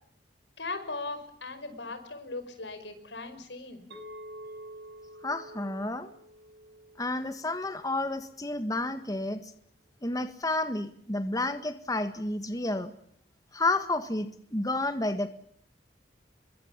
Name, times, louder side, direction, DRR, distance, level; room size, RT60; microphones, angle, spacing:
voice 1, 0.6-3.8, left 3 dB, 85° left, 10 dB, 5.6 m, -38 dB
Chink clink, 3.9-8.2, right 1 dB, 80° right, 6.5 m, -48 dB
voice 2, 5.2-6.1 7.0-9.5 10.0-12.9 13.5-15.3, left 2 dB, 20° left, 9 dB, 1.5 m, -30 dB
26.0 x 22.5 x 7.4 m, 0.65 s
head